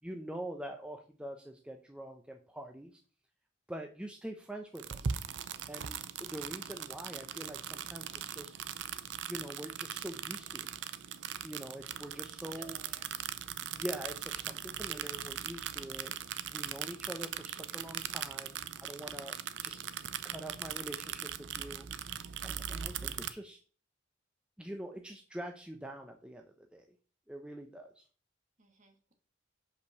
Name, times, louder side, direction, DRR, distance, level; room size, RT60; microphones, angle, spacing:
voice 1, 0.0-3.0 3.7-5.0 5.7-8.5 9.2-10.7 11.4-12.8 13.7-16.1 16.5-19.4 19.6-19.8 20.2-21.9 22.4-23.6 24.6-26.9 27.3-28.1, right 1 dB, 5° right, 3 dB, 0.6 m, -44 dB
sound 1, 4.7-23.3, right 8 dB, 75° right, 0.6 m, -40 dB
voice 2, 12.1-13.1 14.3-14.5 28.6-29.1, right 3 dB, 40° right, 4 dB, 1.6 m, -61 dB
5.4 x 5.1 x 6.4 m, 0.39 s
head